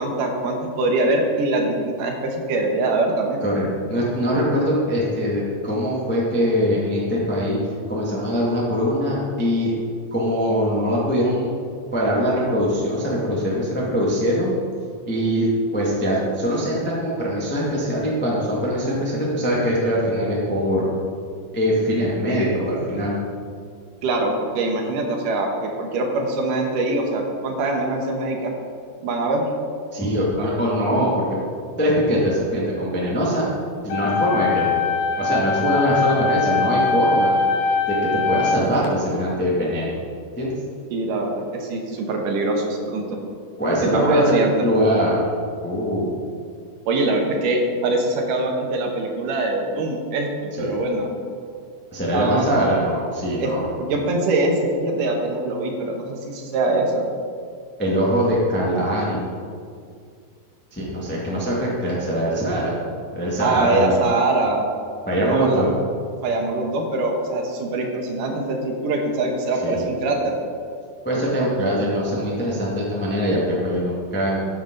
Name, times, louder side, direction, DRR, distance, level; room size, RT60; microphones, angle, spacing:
voice 1, 0.0-3.4 24.0-28.5 29.0-29.5 40.9-43.0 43.8-44.5 46.9-51.1 52.1-52.5 53.4-53.5 53.8-57.1 63.4-64.7 65.2-65.6 66.2-70.3, right 2 dB, 70° right, 1 dB, 2.5 m, -23 dB
voice 2, 3.4-7.6 7.9-9.7 10.1-11.6 11.9-14.5 15.1-20.9 21.5-23.1 29.9-31.4 31.8-33.5 33.8-34.7 35.2-37.4 37.9-39.9 40.4-40.5 43.6-45.2 45.6-46.1 50.6-50.7 51.9-53.6 57.8-59.3 60.7-62.8 63.1-64.0 65.1-65.8 69.6-69.8 71.0-74.4, equal, 15° left, -5 dB, 0.4 m, -22 dB
sound 1, 33.9-38.9, left 4 dB, 75° left, 2.4 m, -22 dB
13.5 x 7.4 x 3.9 m, 2.2 s
omnidirectional pair, 4.4 m